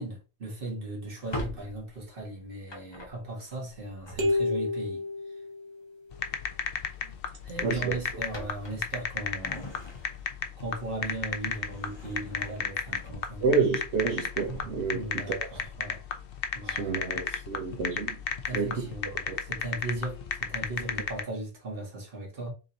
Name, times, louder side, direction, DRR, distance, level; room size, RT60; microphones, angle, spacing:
voice 1, 0.0-5.0 7.0-7.1 7.4-9.8 10.6-13.4 14.9-16.0 16.5-17.7 18.4-22.5, right 2 dB, 55° right, 1.7 m, -38 dB
Drawer open or close, 1.1-4.8 6.2-6.5 6.9-7.0 7.5-10.4 10.9-13.6 14.0-16.0, left 1 dB, 25° left, 0.8 m, -44 dB
sound 1, 4.2-6.1, left 2 dB, 25° right, 0.9 m, -30 dB
sound 2, 6.1-21.2, left 7 dB, 60° left, 0.8 m, -33 dB
voice 2, 7.6-8.0 13.4-15.4 16.6-18.2 18.5-18.8 19.3-19.4, right 4 dB, 80° right, 1.2 m, -29 dB
3.7 x 2.8 x 3.9 m
omnidirectional pair, 1.1 m